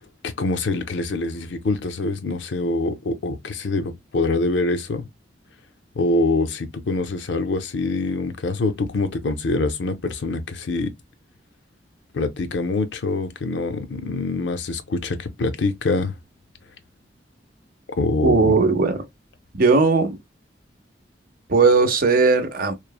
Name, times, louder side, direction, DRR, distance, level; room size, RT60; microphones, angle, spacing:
voice 1, 0.2-5.1 6.0-10.9 12.1-16.1 18.0-18.6, left 2 dB, 80° left, 0.5 m, -24 dB
voice 2, 18.2-19.0 19.5-20.2 21.5-22.7, right 4 dB, 55° right, 0.6 m, -17 dB
3.1 x 2.0 x 2.2 m
head